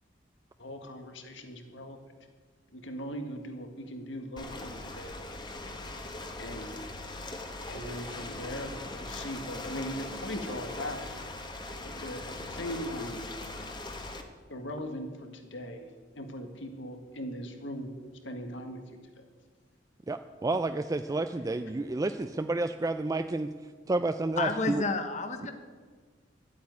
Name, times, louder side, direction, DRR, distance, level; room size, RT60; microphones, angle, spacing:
voice 1, 0.6-2.0 2.7-5.2 6.4-6.8 7.7-11.1 11.8-13.3 14.5-15.9 16.2-17.9 18.2-18.8, equal, 75° left, 5 dB, 1.8 m, -39 dB
Ocean, 4.4-14.2, left 2 dB, 25° left, 1.3 m, -40 dB
voice 2, 20.1-23.5 23.9-24.8, right 2 dB, 20° right, 8 dB, 0.4 m, -30 dB
voice 3, 24.4-25.5, left 3 dB, 40° left, 6 dB, 1.1 m, -30 dB
12.0 x 8.5 x 9.5 m, 1.5 s
head